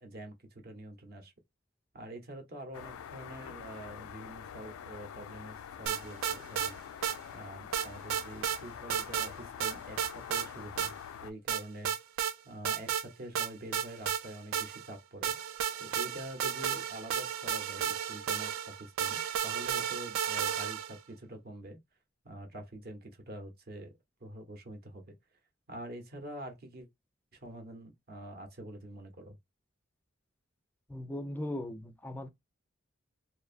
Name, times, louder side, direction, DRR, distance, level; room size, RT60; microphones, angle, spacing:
voice 1, 0.0-1.3 1.9-6.8 7.3-10.9 11.2-11.9 12.4-15.3 15.8-21.8 22.2-23.9 24.2-25.2 25.7-26.9 27.3-29.4, right 1 dB, 50° right, 0.8 m, -46 dB
sound 1, 2.7-11.3, left 8 dB, 85° left, 0.3 m, -46 dB
sound 2, 5.9-6.7 7.0-7.2 7.7-8.6 8.9-9.3 9.6-10.5 10.8-10.9 11.5-12.3 12.6-13.1 13.4-14.9 15.2-21.0, right 9 dB, 75° right, 0.3 m, -33 dB
voice 2, 30.9-32.3, left 1 dB, 10° left, 0.3 m, -38 dB
2.7 x 2.2 x 2.4 m
head